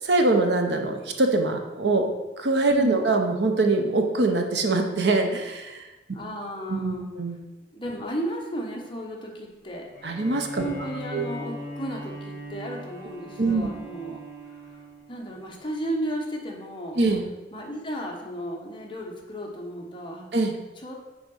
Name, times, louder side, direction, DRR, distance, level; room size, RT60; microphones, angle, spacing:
voice 1, 0.0-2.1 2.4-5.8 6.7-7.4 10.0-10.6 11.1-11.2 13.4-13.7 17.0-17.2 20.3-20.5, right 2 dB, 70° right, 4 dB, 0.9 m, -23 dB
voice 2, 2.7-3.0 6.1-7.1 7.7-9.9 10.6-14.2 14.5-14.8 15.1-17.0 17.5-20.3 20.8-20.9, right 1 dB, 30° left, 0 dB, 1.2 m, -34 dB
Bowed string instrument, 9.9-15.4, equal, 25° right, 2.4 m, -39 dB
6.3 x 4.7 x 5.4 m, 1.1 s
head